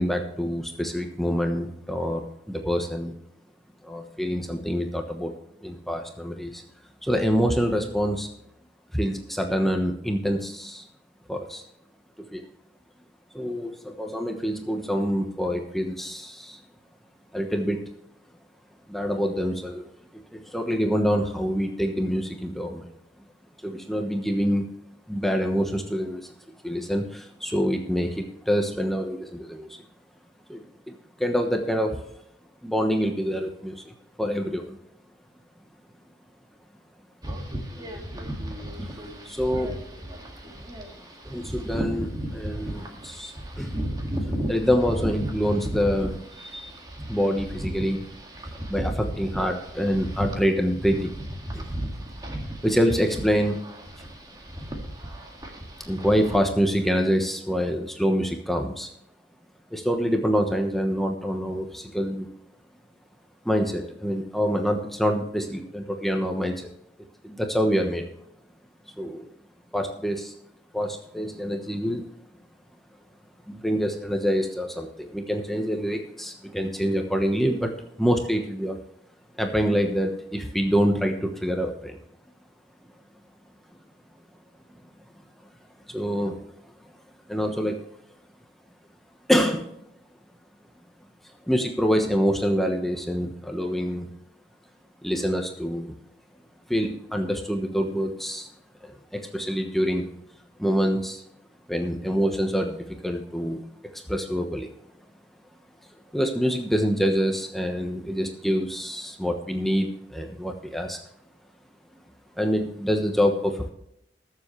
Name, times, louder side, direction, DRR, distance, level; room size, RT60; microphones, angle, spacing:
voice 1, 0.0-3.1 3.8-5.3 5.6-6.6 7.0-8.3 8.9-10.9 11.3-11.6 12.2-12.5 13.3-16.6 17.3-17.8 18.9-19.9 20.3-22.9 23.6-24.6 25.1-26.3 26.6-29.8 30.5-32.1 32.6-34.8 38.8-38.9 39.2-39.8 40.8-43.8 44.5-46.8 47.1-48.1 48.7-51.1 51.5-51.6 52.6-53.6 54.0-54.1 55.8-58.9 59.7-62.3 63.4-66.7 67.2-68.0 69.0-69.3 69.7-70.3 70.7-72.1 73.5-77.7 78.0-78.8 79.4-82.0 85.9-86.5 87.3-87.8 89.3-89.7 91.5-94.1 95.0-95.9 96.7-98.5 98.8-100.1 100.6-101.2 101.7-103.6 103.9-104.7 106.1-111.0 112.4-113.7, equal, ahead, 3 dB, 1.0 m, -26 dB
sound 1, 37.2-56.4, equal, 20° right, 1.9 m, -34 dB
20.5 x 7.4 x 3.2 m, 0.75 s
head